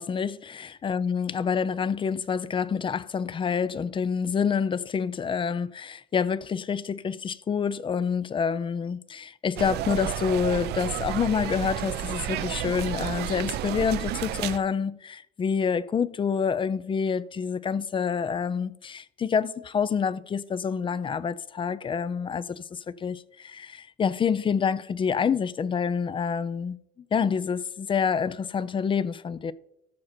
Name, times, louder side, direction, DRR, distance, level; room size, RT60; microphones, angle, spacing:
voice 1, 0.0-26.8 27.1-29.5, left 6 dB, 30° left, 0.5 m, -27 dB
sound 1, 9.6-14.6, right 13 dB, 75° right, 0.6 m, -31 dB
13.5 x 6.5 x 4.4 m
cardioid pair, 110°, 17 cm